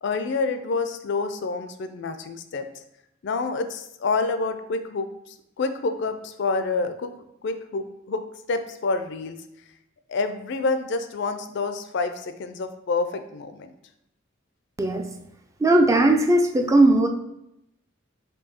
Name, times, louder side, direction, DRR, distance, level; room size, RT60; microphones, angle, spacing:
voice 1, 0.0-2.7 3.2-7.1 7.4-8.2 8.5-9.4 10.1-13.7, left 3 dB, 60° left, 9 dB, 0.4 m, -28 dB
voice 2, 14.8-15.1 15.6-17.1, right 1 dB, 15° right, 4 dB, 0.3 m, -18 dB
4.6 x 2.7 x 4.2 m, 0.82 s
head